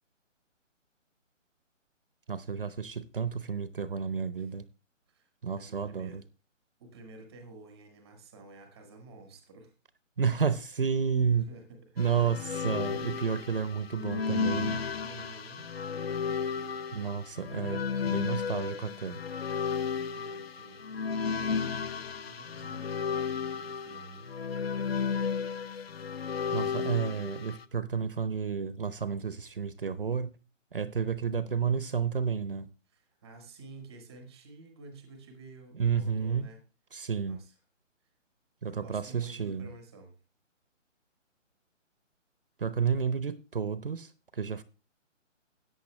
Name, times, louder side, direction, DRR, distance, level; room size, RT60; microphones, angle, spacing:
voice 1, 2.3-4.6 5.4-6.2 10.2-11.5 12.0-14.8 16.9-19.2 26.5-30.3 30.7-32.7 35.7-36.5 36.9-37.4 38.6-39.7 42.6-44.6, right 6 dB, 45° right, 0.7 m, -31 dB
voice 2, 5.1-6.2 6.8-9.7 11.3-12.3 15.0-15.6 20.1-20.8 21.3-24.2 26.7-27.2 32.9-36.6 37.3-37.5 38.7-40.1, right 3 dB, 5° right, 0.8 m, -51 dB
sound 1, 12.0-27.6, left 6 dB, 50° left, 0.7 m, -33 dB
13.5 x 9.2 x 3.2 m
hypercardioid pair, 170°, 38 cm